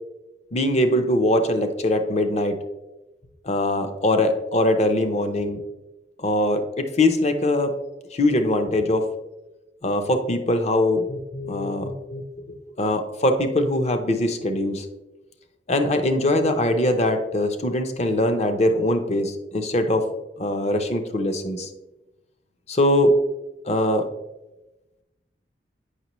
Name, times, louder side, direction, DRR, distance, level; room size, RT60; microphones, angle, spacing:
voice 1, 0.5-2.6 3.4-5.6 6.2-7.7 8.1-9.0 9.8-12.3 12.8-14.9 15.7-20.0 20.4-21.7 22.7-23.2 23.7-24.1, left 1 dB, 35° left, 7 dB, 0.6 m, -22 dB
8.1 x 5.9 x 3.0 m, 1.0 s
head